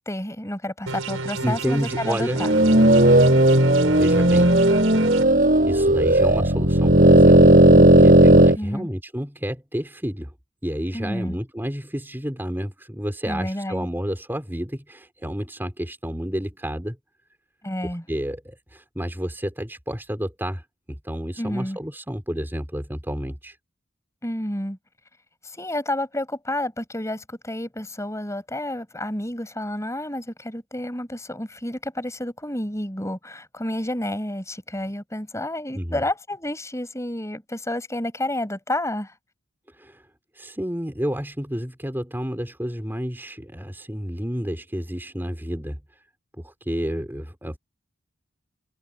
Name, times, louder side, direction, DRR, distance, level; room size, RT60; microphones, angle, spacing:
voice 1, 0.0-2.5 7.7-7.9 8.6-8.9 10.9-11.4 13.3-13.9 17.6-18.0 21.4-21.8 24.2-24.8 25.4-39.1, left 1 dB, 15° left, 6.1 m, -30 dB
sound 1, 0.9-5.2, right 3 dB, 85° right, 5.5 m, -32 dB
voice 2, 1.4-2.4 3.9-5.1 5.6-10.3 10.6-17.0 18.1-20.6 20.9-23.6 35.7-36.0 39.8-40.0 40.3-45.8 46.4-47.6, equal, 10° right, 4.9 m, -30 dB
sound 2, 2.4-8.6, right 1 dB, 40° right, 7.6 m, -14 dB
head